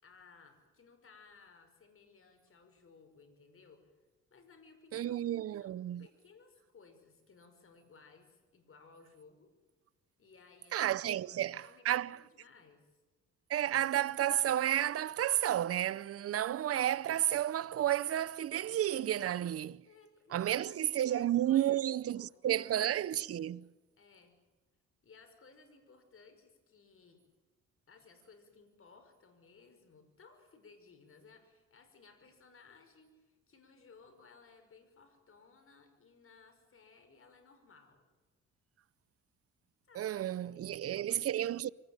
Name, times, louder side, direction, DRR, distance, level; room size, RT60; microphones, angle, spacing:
voice 1, 0.0-3.9 4.3-9.5 10.2-10.8 11.1-12.9 19.9-22.9 24.0-24.3 25.0-27.2 27.9-38.0 39.9-41.6, left 4 dB, 45° left, 5.5 m, -60 dB
voice 2, 4.9-6.1 10.7-12.2 13.5-19.8 20.3-23.7 40.0-41.7, right 12 dB, 50° right, 0.7 m, -32 dB
24.5 x 18.5 x 9.0 m
cardioid pair, 90°, 30 cm